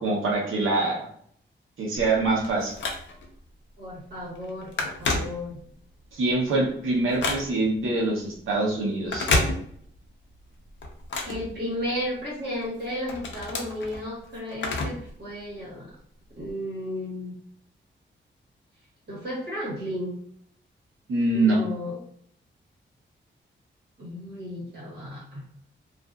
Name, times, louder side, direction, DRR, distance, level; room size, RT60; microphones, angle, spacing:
voice 1, 0.0-1.1 1.8-2.8 6.1-9.3 21.1-21.6, right 2 dB, 90° right, -3 dB, 0.9 m, -24 dB
Telephone, 2.0-3.4 3.9-4.1 4.4-5.9 6.3-7.8 9.0-10.1 10.4-12.2 12.6-15.1 15.4-15.5 16.4-16.5, left 3 dB, 65° left, 0.5 m, -30 dB
voice 2, 3.8-5.6 11.2-15.9 16.3-17.3 19.1-20.2 21.3-22.0 24.0-25.4, equal, 55° right, -6 dB, 1.3 m, -34 dB
2.5 x 2.4 x 2.3 m, 0.63 s
wide cardioid pair, 165°, 20 cm